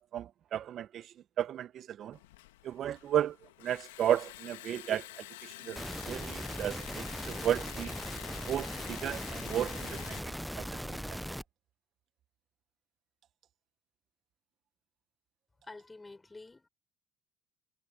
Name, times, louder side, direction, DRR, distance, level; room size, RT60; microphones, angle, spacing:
voice 1, 0.0-2.2 2.6-3.4 3.6-7.9 8.5-10.7 11.1-11.2, right 11 dB, 55° right, 1.0 m, -34 dB
Liquid, 2.1-10.2, left 17 dB, 85° left, 1.5 m, -48 dB
sound 1, 5.8-11.4, equal, ahead, 0.7 m, -39 dB
voice 2, 15.6-16.7, left 3 dB, 15° left, 6.1 m, -49 dB
hypercardioid pair, 70°, 0 cm